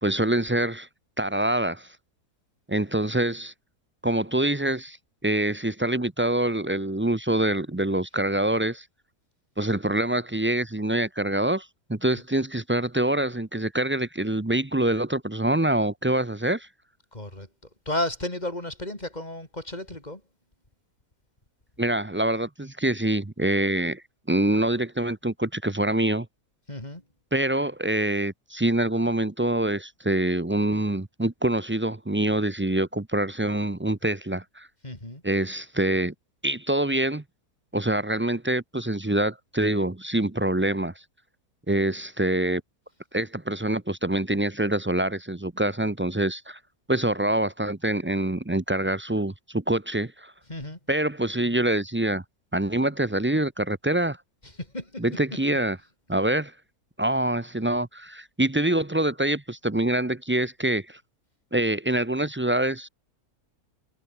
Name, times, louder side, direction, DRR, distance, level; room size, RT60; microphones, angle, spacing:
voice 1, 0.0-0.9 1.2-1.9 2.7-3.5 4.0-5.0 5.2-8.8 9.6-16.7 21.8-26.3 27.3-34.7 35.2-36.1 36.4-37.2 37.7-40.9 41.7-42.6 43.1-46.6 46.9-50.3 50.9-52.2 52.5-54.2 55.0-55.8 56.1-56.5 57.0-61.0 61.5-62.9, right 1 dB, 15° right, 0.5 m, -25 dB
voice 2, 17.1-17.5 17.9-20.2 26.7-27.0 34.8-35.2 50.5-50.8 54.6-55.0, left 1 dB, 25° left, 5.0 m, -33 dB
omnidirectional pair, 1.6 m